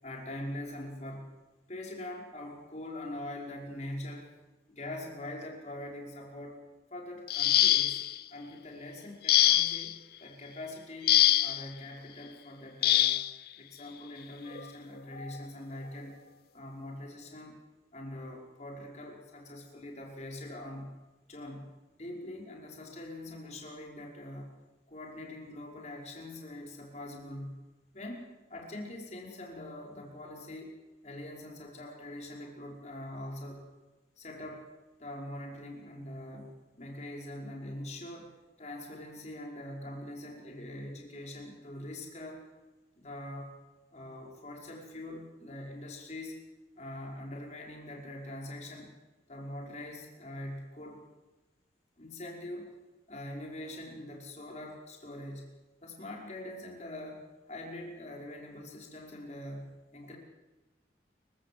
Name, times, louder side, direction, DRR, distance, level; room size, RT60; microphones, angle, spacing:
voice 1, 0.0-1.3 1.7-4.3 4.7-6.6 6.9-8.0 8.3-13.2 13.6-16.1 16.5-17.6 17.9-20.9 21.3-21.7 22.0-24.5 24.9-27.6 27.9-30.8 31.0-33.7 34.2-34.6 35.0-38.3 38.6-42.4 43.0-43.5 43.9-46.4 46.8-48.9 49.3-51.0 52.0-52.7 53.1-55.5 55.8-57.2 57.5-60.2, left 1 dB, 40° left, 0 dB, 5.3 m, -43 dB
sound 1, 7.3-8.2 9.3-9.9 11.1-11.6 12.8-13.3 14.5-14.6 15.2-15.4, left 13 dB, 55° left, 0.6 m, -24 dB
28.0 x 16.5 x 7.9 m, 1.2 s
head